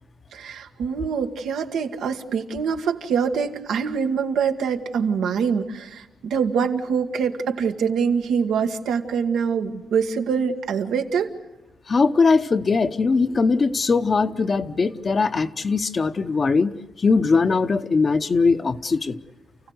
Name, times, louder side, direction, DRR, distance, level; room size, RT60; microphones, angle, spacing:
voice 1, 0.3-6.0 6.3-11.3, right 6 dB, 90° right, 5 dB, 1.6 m, -24 dB
voice 2, 11.9-16.7 17.0-19.2, left 4 dB, 35° left, 10 dB, 0.9 m, -20 dB
29.0 x 16.0 x 7.9 m, 1.1 s
cardioid pair, 110°, 0 cm